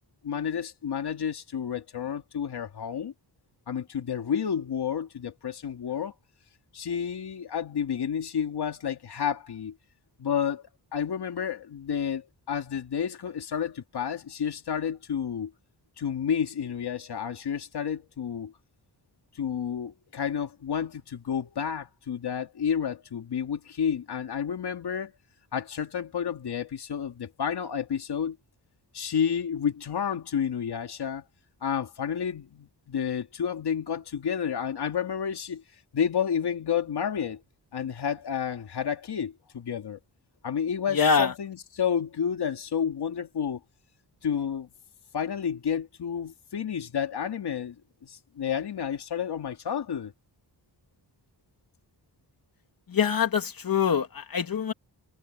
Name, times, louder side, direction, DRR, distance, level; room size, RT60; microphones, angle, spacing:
voice 1, 0.2-3.1 3.7-6.1 6.7-9.7 10.2-10.6 10.9-15.5 16.0-18.5 19.3-25.1 25.5-28.4 28.9-31.2 31.6-35.6 35.9-37.4 37.7-40.0 40.4-43.6 44.2-44.7 45.1-47.8 48.0-50.1, left 8 dB, 70° left, 2.7 m, -30 dB
voice 2, 40.9-41.3 52.9-54.7, left 6 dB, 55° left, 3.0 m, -24 dB
wide cardioid pair, 165°, 41 cm